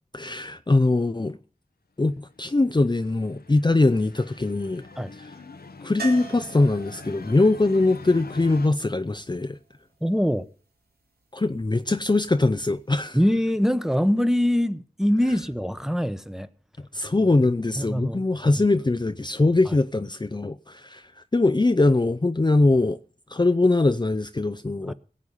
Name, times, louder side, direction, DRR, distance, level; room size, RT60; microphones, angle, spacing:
voice 1, 0.1-1.4 2.0-4.9 5.8-9.6 11.3-13.2 16.9-21.0 21.3-23.0 23.3-24.9, left 2 dB, 30° left, 0.6 m, -22 dB
sound 1, 2.4-8.7, left 4 dB, 90° left, 0.9 m, -43 dB
sound 2, 6.0-9.9 12.5-12.6 12.9-13.0, right 4 dB, 80° right, 3.0 m, -42 dB
voice 2, 10.0-10.5 13.1-16.5 17.8-18.2 18.5-18.6 19.7-19.8 24.9-25.0, equal, 5° right, 1.1 m, -23 dB
17.5 x 8.3 x 5.5 m
wide cardioid pair, 45°, 16 cm